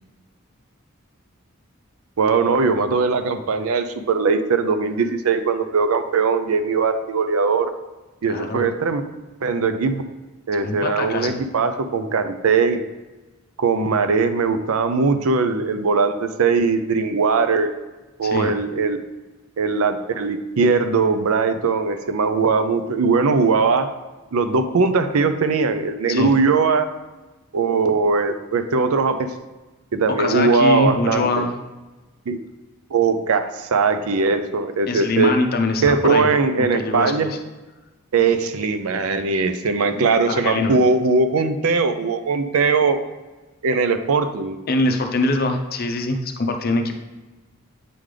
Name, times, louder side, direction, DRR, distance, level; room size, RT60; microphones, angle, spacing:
voice 1, 2.2-7.7 8.2-9.0 9.4-10.0 10.5-12.8 13.6-17.7 18.2-19.0 19.6-23.9 24.3-26.9 27.5-29.3 29.9-31.5 32.3-32.4 32.9-35.3 35.8-37.3 38.1-43.0 43.6-44.6, right 4 dB, 80° right, 9 dB, 0.5 m, -20 dB
voice 2, 8.3-8.7 10.6-11.4 18.2-18.5 26.1-26.3 30.2-31.6 34.9-36.3 36.6-37.4 39.9-40.8 44.7-46.9, left 2 dB, 45° left, 5 dB, 0.5 m, -23 dB
8.4 x 3.8 x 3.2 m, 1.2 s
head